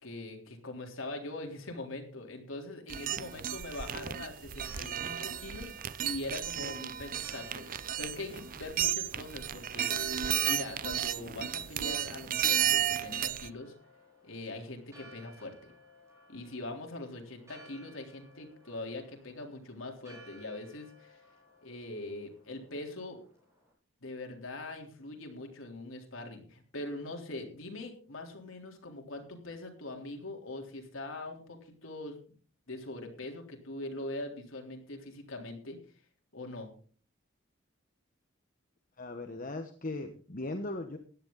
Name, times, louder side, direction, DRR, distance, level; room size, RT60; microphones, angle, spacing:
voice 1, 0.0-13.7 14.2-15.7 16.3-21.2 21.6-23.2 24.0-32.2 32.7-35.8 36.3-36.7, left 2 dB, 80° left, 2 dB, 3.6 m, -42 dB
sound 1, 2.9-13.5, right 10 dB, 40° right, 0.5 m, -33 dB
Church bell, 4.3-23.7, equal, 15° right, 6.2 m, -58 dB
voice 2, 39.0-41.0, left 2 dB, 40° left, 6 dB, 1.2 m, -38 dB
16.0 x 11.0 x 3.9 m, 0.42 s
head